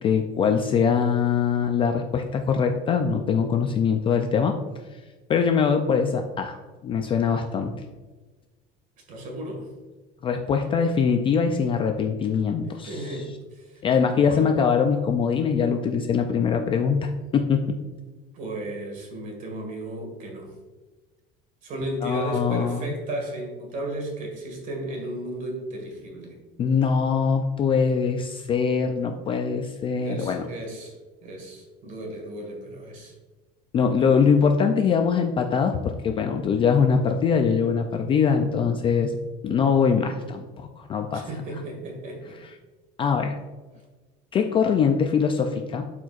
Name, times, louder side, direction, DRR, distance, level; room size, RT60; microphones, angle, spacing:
voice 1, 0.0-4.6 5.3-6.6 6.8-7.8 10.2-13.2 13.8-17.8 22.0-23.0 26.6-30.5 33.7-39.1 39.4-41.3 43.0-43.4 44.3-45.9, left 6 dB, 25° left, 5 dB, 0.3 m, -23 dB
voice 2, 9.1-9.7 12.6-13.8 14.1-14.6 18.3-20.5 21.6-26.4 30.0-30.9 31.2-33.1 41.1-42.4, right 1 dB, 40° right, 2 dB, 1.9 m, -34 dB
12.0 x 4.6 x 2.4 m, 1.3 s
cardioid pair, 170°, 21 cm